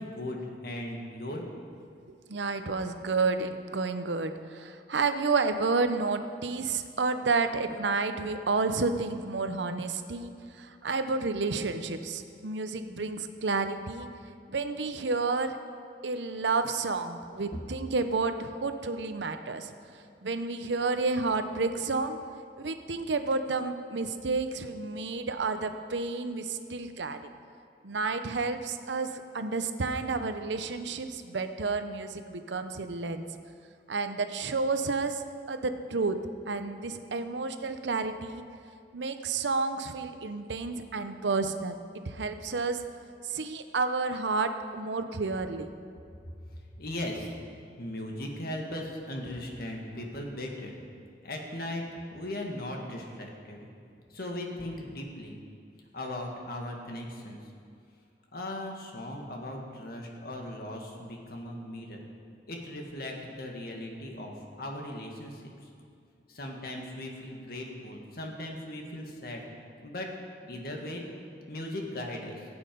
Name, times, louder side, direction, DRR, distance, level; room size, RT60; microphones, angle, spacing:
voice 1, 0.0-1.4 46.8-47.3 47.8-50.8 51.2-51.8 52.1-53.6 54.1-55.4 55.9-57.4 58.3-62.0 62.5-65.4 66.3-69.5 69.8-70.1 70.5-71.0 71.5-72.4, left 1 dB, 60° left, 1 dB, 1.8 m, -38 dB
voice 2, 2.3-14.1 14.5-15.6 16.0-19.7 20.2-22.2 22.6-27.3 27.8-33.2 33.9-35.2 35.5-36.2 36.5-38.5 38.9-41.8 42.1-42.8 43.2-45.7, right 4 dB, 85° right, 9 dB, 0.8 m, -30 dB
15.5 x 8.9 x 5.3 m, 2.4 s
head